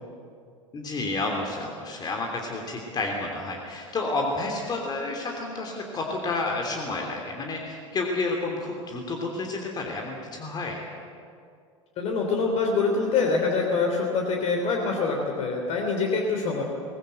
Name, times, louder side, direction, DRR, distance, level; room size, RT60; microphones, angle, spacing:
voice 1, 0.7-10.8, left 3 dB, 25° left, 1 dB, 3.2 m, -30 dB
voice 2, 12.0-16.6, left 4 dB, 40° left, 1 dB, 3.2 m, -25 dB
22.5 x 19.5 x 8.0 m, 2.3 s
figure-of-eight pair, 75°, 16 cm